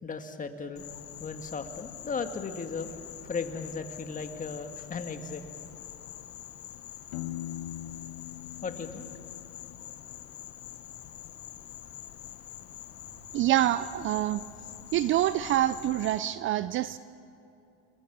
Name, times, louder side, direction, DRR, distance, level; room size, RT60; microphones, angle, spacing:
voice 1, 0.0-0.9 1.2-3.0 3.3-5.5 8.6-9.1, left 4 dB, 20° left, 7 dB, 1.9 m, -36 dB
Insect, 0.8-16.2, left 12 dB, 40° left, 1.3 m, -45 dB
Piano, 7.1-10.8, left 13 dB, 80° left, 1.5 m, -42 dB
voice 2, 13.3-14.4 14.9-17.0, right 13 dB, 35° right, 15 dB, 0.5 m, -26 dB
29.5 x 22.0 x 6.2 m, 2.7 s
supercardioid pair, 105°, 35 cm